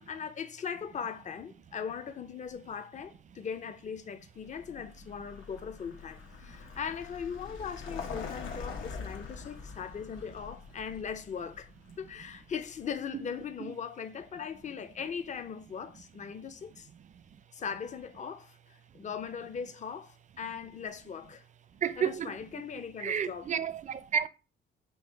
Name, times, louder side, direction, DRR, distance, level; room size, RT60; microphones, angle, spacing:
voice 1, 0.0-11.7 12.0-16.9 17.5-21.4 22.0-23.5, left 7 dB, 35° left, 0.5 m, -39 dB
Vehicle, 4.5-13.3, left 5 dB, 80° left, 1.0 m, -44 dB
voice 2, 21.8-22.4 23.0-24.3, right 8 dB, 40° right, 0.4 m, -31 dB
5.4 x 2.0 x 4.5 m
cardioid pair, 90°, 20 cm